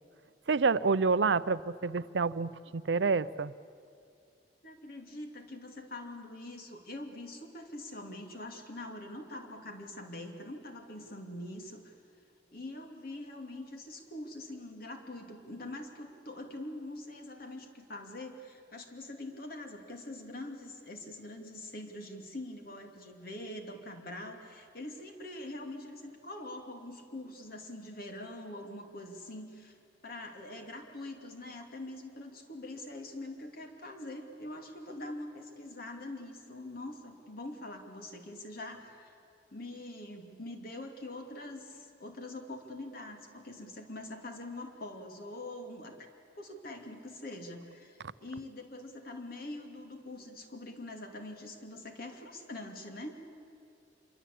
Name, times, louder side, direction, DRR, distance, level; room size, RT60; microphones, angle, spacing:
voice 1, 0.5-3.5, right 4 dB, 75° right, 16 dB, 0.6 m, -28 dB
voice 2, 4.6-11.9 12.5-29.8 30.0-39.1 39.5-45.9 46.4-53.2, left 1 dB, 55° left, 4 dB, 2.7 m, -44 dB
26.5 x 23.0 x 8.6 m, 2.5 s
head